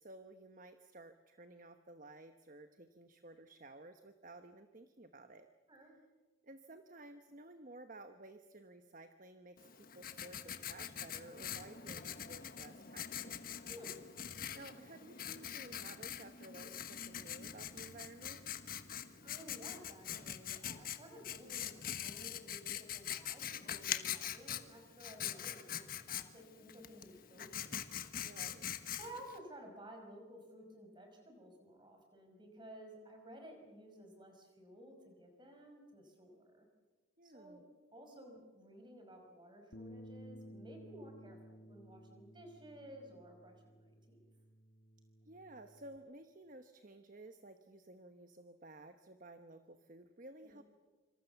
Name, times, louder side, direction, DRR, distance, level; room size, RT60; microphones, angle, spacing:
voice 1, 0.0-5.5 6.4-13.5 14.5-18.4 28.2-28.7 37.2-37.6 45.2-50.6, right 2 dB, 40° right, 8 dB, 1.1 m, -55 dB
Writing, 9.6-29.4, left 9 dB, 45° left, 1.3 m, -44 dB
voice 2, 19.2-27.9 29.0-36.7 37.2-37.6 37.9-44.2 50.4-50.6, right 1 dB, 25° right, 3 dB, 5.6 m, -55 dB
Bass guitar, 39.7-46.0, equal, 60° left, 1.6 m, -56 dB
26.0 x 26.0 x 7.0 m, 1.3 s
head